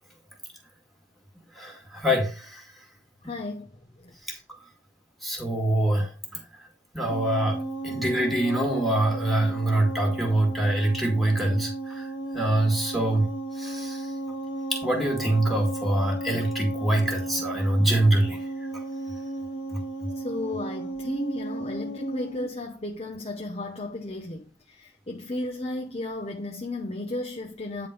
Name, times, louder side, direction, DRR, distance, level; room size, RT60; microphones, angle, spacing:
voice 1, 1.5-2.8 4.2-4.6 5.2-6.4 6.9-14.1 14.7-18.4 18.7-18.8 19.7-20.1, right 1 dB, ahead, 2.1 m, -25 dB
voice 2, 3.2-4.2 20.1-27.9, left 1 dB, 35° left, 1.0 m, -34 dB
sound 1, 7.1-22.5, right 2 dB, 70° left, 1.6 m, -34 dB
9.8 x 3.9 x 5.1 m
head